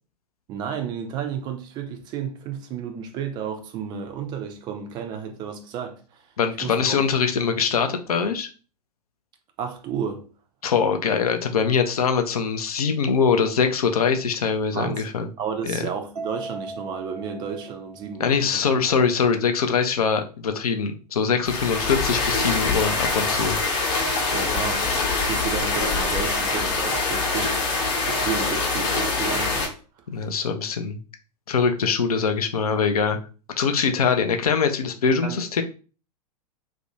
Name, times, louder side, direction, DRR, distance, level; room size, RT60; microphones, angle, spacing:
voice 1, 0.5-6.2 6.6-7.0 9.6-10.2 14.7-15.0 15.4-18.9 24.3-27.7 28.0-29.8 35.2-35.4, right 7 dB, 20° right, 0.4 m, -32 dB
voice 2, 6.4-8.5 10.6-15.3 15.7-15.9 18.2-23.6 30.1-31.0 31.5-33.2 33.6-35.6, left 6 dB, 65° left, 0.5 m, -23 dB
Mallet percussion, 16.2-18.6, right 2 dB, 70° right, 0.6 m, -38 dB
sound 1, 21.4-29.7, left 3 dB, 40° left, 0.9 m, -24 dB
2.5 x 2.1 x 2.7 m
figure-of-eight pair, 100°, 21 cm